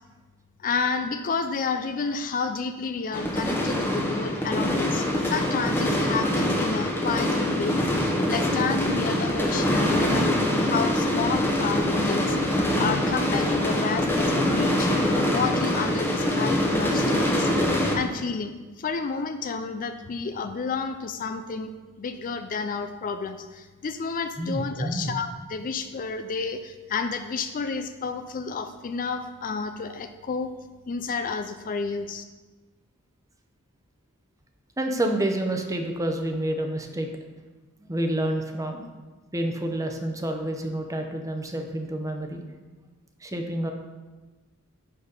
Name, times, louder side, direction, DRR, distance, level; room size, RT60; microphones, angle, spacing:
voice 1, 0.6-17.5 17.9-21.7 22.0-30.5 30.9-32.2, left 5 dB, 40° left, 9 dB, 0.4 m, -31 dB
sound 1, 3.1-18.0, left 1 dB, 10° left, 1.0 m, -24 dB
voice 2, 24.4-25.1 34.8-37.1 37.8-38.8 39.3-42.4 43.2-43.7, right 1 dB, 15° right, 4 dB, 0.7 m, -28 dB
9.9 x 4.1 x 5.5 m, 1.2 s
head